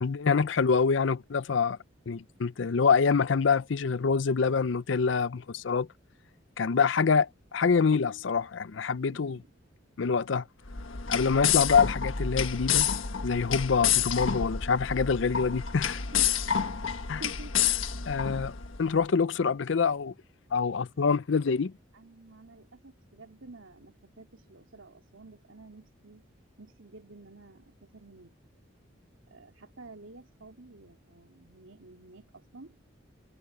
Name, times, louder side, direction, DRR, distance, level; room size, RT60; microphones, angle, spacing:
voice 1, 0.0-1.8 2.1-5.9 6.6-9.4 10.0-10.4 11.1-12.9 13.2-16.0 17.1-17.2 18.1-18.5 18.8-20.1 20.5-21.7, left 5 dB, 70° left, 0.5 m, -26 dB
voice 2, 9.1-9.5 16.1-16.3 17.1-17.5 18.1-18.5 21.9-26.2 26.6-28.3 29.3-32.7, right 2 dB, 90° right, 2.9 m, -50 dB
sound 1, 10.6-18.8, left 8 dB, 85° left, 1.5 m, -29 dB
head